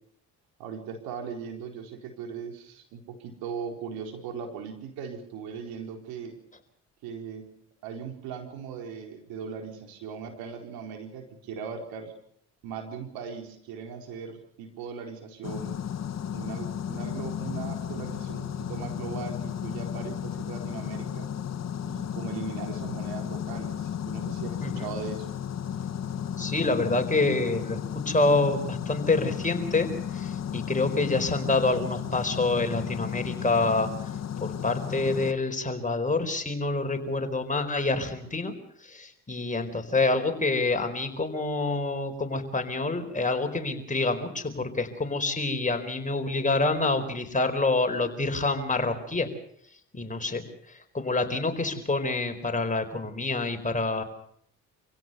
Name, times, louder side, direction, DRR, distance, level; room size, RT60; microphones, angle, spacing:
voice 1, 0.6-6.4 7.0-7.5 7.8-12.1 12.6-15.8 16.3-21.3 21.8-25.3, right 6 dB, 80° right, 4 dB, 4.3 m, -39 dB
sound 1, 15.4-35.3, left 9 dB, 45° left, 1.6 m, -34 dB
voice 2, 26.4-27.8 28.1-33.9 34.4-38.5 38.9-49.3 49.9-54.0, left 3 dB, 20° left, 6 dB, 4.6 m, -27 dB
27.5 x 16.5 x 6.9 m, 0.69 s
supercardioid pair, 60°, 36 cm